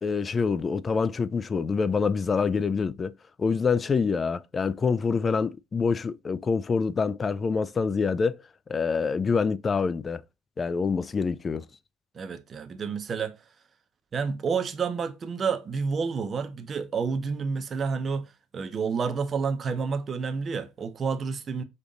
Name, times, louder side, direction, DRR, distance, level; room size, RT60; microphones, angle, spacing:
voice 1, 0.0-3.1 3.4-8.4 8.7-10.2 10.6-11.6, left 5 dB, 25° left, 0.3 m, -26 dB
voice 2, 12.1-13.4 14.1-21.6, right 5 dB, 30° right, 0.7 m, -29 dB
5.3 x 2.4 x 3.9 m
cardioid pair, 115°, 0 cm